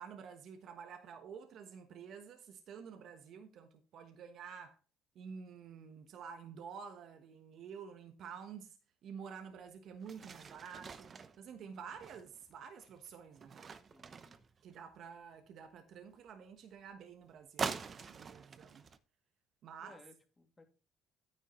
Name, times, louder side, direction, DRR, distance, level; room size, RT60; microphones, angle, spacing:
voice 1, 0.0-4.8 5.1-8.7 9.0-13.8 14.6-17.8 18.1-18.8 19.6-20.0, right 6 dB, 65° right, 1.2 m, -50 dB
sound 1, 9.6-9.7 10.0-15.0 17.6-19.0, right 5 dB, 40° right, 0.8 m, -44 dB
voice 2, 13.9-14.5 19.8-20.6, left 2 dB, 20° left, 2.5 m, -61 dB
9.7 x 9.2 x 3.1 m
supercardioid pair, 85°, 0 cm